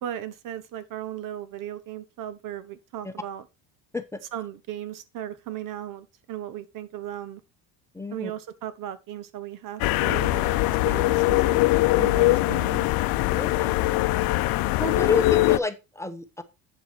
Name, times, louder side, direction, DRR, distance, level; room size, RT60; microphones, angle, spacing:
voice 1, 0.0-3.4 4.3-7.4 8.1-11.6 12.0-13.0, right 11 dB, 60° right, 1.2 m, -36 dB
voice 2, 7.9-8.3 13.3-13.8 14.8-16.4, left 3 dB, 10° left, 0.9 m, -30 dB
sound 1, 9.8-15.6, left 19 dB, 65° left, 0.6 m, -22 dB
8.2 x 7.1 x 4.4 m
cardioid pair, 120°, 37 cm